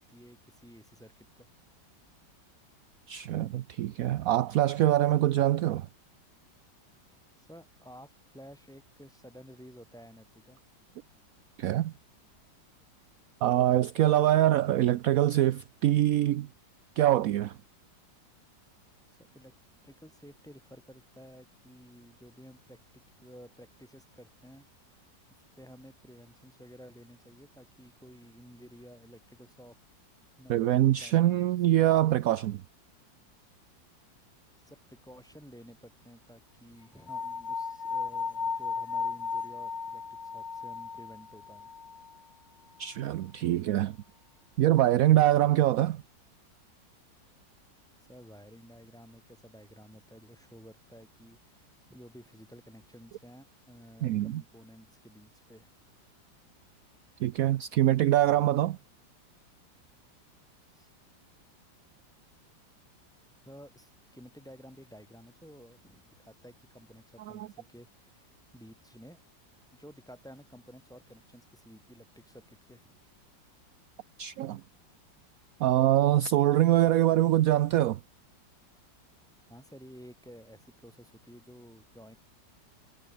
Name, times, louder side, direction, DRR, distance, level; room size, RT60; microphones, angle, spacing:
voice 1, 0.0-1.5 7.4-10.6 19.1-19.5 19.8-22.8 23.2-29.8 30.4-30.7 31.0-31.8 34.6-41.7 48.1-55.7 60.7-60.9 63.4-69.2 69.7-73.0 79.5-82.2, equal, ahead, 3.9 m, -53 dB
voice 2, 3.1-5.9 11.6-11.9 13.4-16.5 17.0-17.6 30.5-32.6 42.8-44.0 44.6-46.0 54.0-54.4 57.2-58.8 67.3-67.5 74.2-74.6 75.6-78.0, right 13 dB, 70° right, 0.8 m, -24 dB
sound 1, 37.1-42.2, left 5 dB, 30° left, 0.8 m, -35 dB
omnidirectional pair, 2.0 m